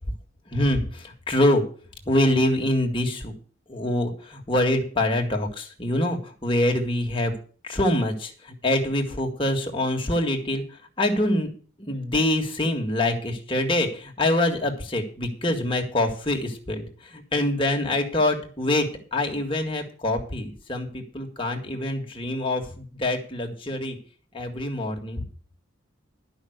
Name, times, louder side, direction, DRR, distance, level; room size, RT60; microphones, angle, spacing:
voice 1, 0.5-1.6 2.1-3.3 3.7-7.3 7.6-10.6 11.0-11.5 11.8-18.9 19.1-24.0 24.3-25.2, left 1 dB, 25° left, 2 dB, 1.9 m, -25 dB
11.5 x 6.0 x 8.0 m, 0.42 s
head